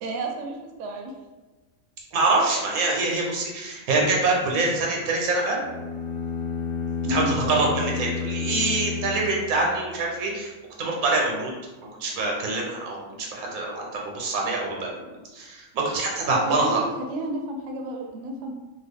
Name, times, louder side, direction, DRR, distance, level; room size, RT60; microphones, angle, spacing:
voice 1, 0.0-1.1 7.0-7.3 16.4-16.8 17.1-18.5, right 1 dB, 65° right, 1 dB, 0.8 m, -31 dB
voice 2, 2.1-5.6 7.1-10.5 10.8-11.5 12.0-15.1 15.3-16.8, right 3 dB, 90° right, -1 dB, 1.2 m, -25 dB
sound 1, 5.6-10.0, left 5 dB, 70° left, 0.5 m, -30 dB
3.0 x 2.3 x 3.4 m, 1.2 s
omnidirectional pair, 1.5 m